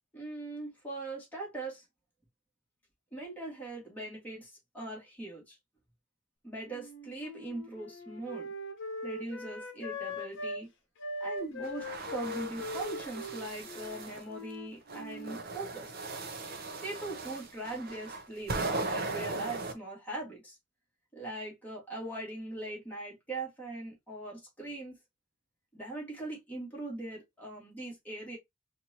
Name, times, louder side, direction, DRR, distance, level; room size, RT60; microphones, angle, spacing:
voice 1, 0.1-1.8 3.1-5.6 6.4-8.5 9.0-10.7 11.2-15.9 16.8-20.6 21.1-25.0 25.7-28.4, right 2 dB, 10° left, 1.8 m, -41 dB
Wind instrument woodwind instrument, 6.6-10.6 11.0-15.4, left 2 dB, 55° left, 0.9 m, -41 dB
sound 1, 11.6-14.2 14.9-19.7, right 3 dB, 45° right, 0.7 m, -38 dB
4.4 x 2.6 x 2.8 m
head